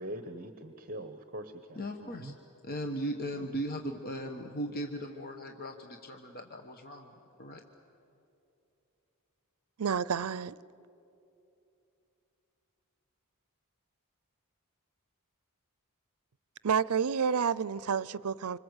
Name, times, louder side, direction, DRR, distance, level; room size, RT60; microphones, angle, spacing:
voice 1, 0.0-2.4 3.3-3.5, right 1 dB, 40° right, 1.0 m, -43 dB
voice 2, 1.8-2.3 2.6-7.1 7.4-7.6, equal, 45° left, 1.3 m, -38 dB
voice 3, 9.8-10.6 16.6-18.6, right 6 dB, 75° right, 0.5 m, -29 dB
26.5 x 25.5 x 8.1 m
head